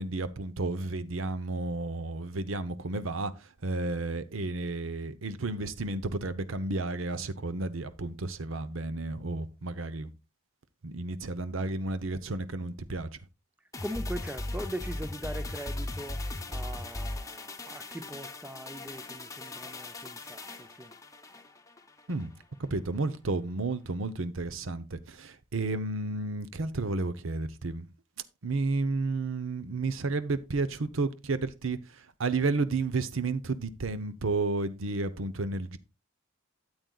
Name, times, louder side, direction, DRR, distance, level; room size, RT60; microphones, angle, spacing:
voice 1, 0.0-3.3 3.6-10.1 10.8-13.1 22.1-22.3 22.6-27.9 28.4-35.8, right 3 dB, 70° right, 0.8 m, -32 dB
sound 1, 13.7-22.3 22.6-22.7, left 2 dB, 15° left, 0.9 m, -38 dB
voice 2, 13.8-16.2 16.5-20.9, right 1 dB, 10° right, 0.5 m, -40 dB
13.0 x 8.0 x 2.3 m
head